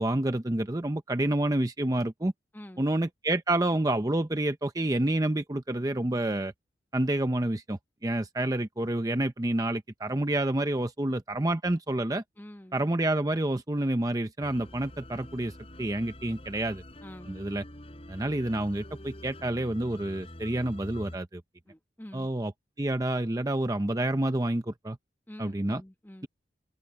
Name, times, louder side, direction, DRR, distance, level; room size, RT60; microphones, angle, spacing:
voice 1, 0.0-2.3 2.8-6.5 6.9-12.2 12.7-15.5 15.8-16.8 17.3-17.6 18.1-21.4 22.1-22.5 22.8-25.0 25.4-25.8, right 1 dB, 20° right, 0.7 m, -28 dB
voice 2, 2.5-2.9 12.4-12.9 17.0-17.4 21.7-22.3 25.3-26.3, left 1 dB, 10° left, 1.2 m, -47 dB
sound 1, 14.4-21.2, left 1 dB, 35° left, 5.4 m, -46 dB
head